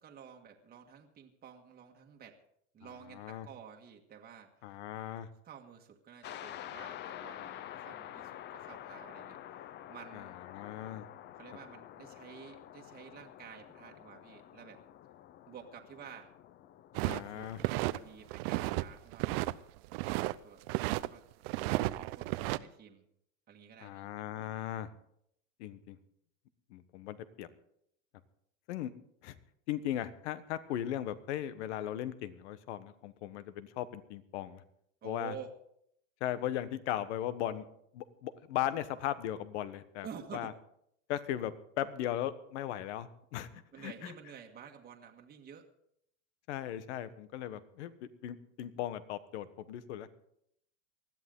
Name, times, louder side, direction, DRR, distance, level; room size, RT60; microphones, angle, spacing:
voice 1, 0.0-2.4 2.7-4.8 5.1-9.4 9.9-10.4 11.4-14.8 15.5-16.3 16.9-19.3 20.0-21.2 22.0-23.1 23.5-24.1 35.0-35.5 40.0-40.5 43.5-45.7, right 7 dB, 25° right, 2 dB, 1.7 m, -51 dB
voice 2, 3.1-3.4 4.6-5.3 10.1-11.1 17.0-17.6 23.8-24.9 25.6-26.0 26.7-27.5 28.7-28.9 29.2-29.3 29.7-34.6 35.0-35.3 36.2-37.6 37.9-40.1 40.3-40.5 41.1-43.5 43.8-44.1 46.5-47.9 48.2-50.1, left 12 dB, 70° left, 13 dB, 1.4 m, -37 dB
sound 1, 6.2-18.3, left 12 dB, 30° left, 0.6 m, -48 dB
sound 2, 16.9-18.0 18.3-18.8 19.1-20.3 20.7-21.1 21.4-22.6, right 19 dB, 55° right, 0.7 m, -33 dB
20.0 x 13.5 x 3.9 m, 0.72 s
supercardioid pair, 130°, 36 cm